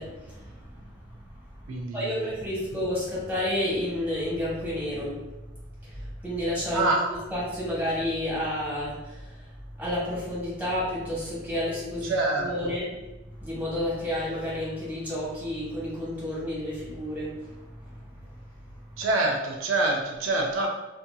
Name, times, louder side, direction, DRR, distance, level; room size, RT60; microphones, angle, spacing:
voice 1, 0.0-1.7 1.9-5.2 5.8-12.1 12.4-13.0 13.4-18.3 18.7-19.0, left 1 dB, 10° right, -9 dB, 1.1 m, -31 dB
voice 2, 1.7-2.1 6.7-7.0 12.0-12.7 19.0-20.7, right 2 dB, 85° right, 0 dB, 0.4 m, -26 dB
2.6 x 2.5 x 2.2 m, 1.1 s
head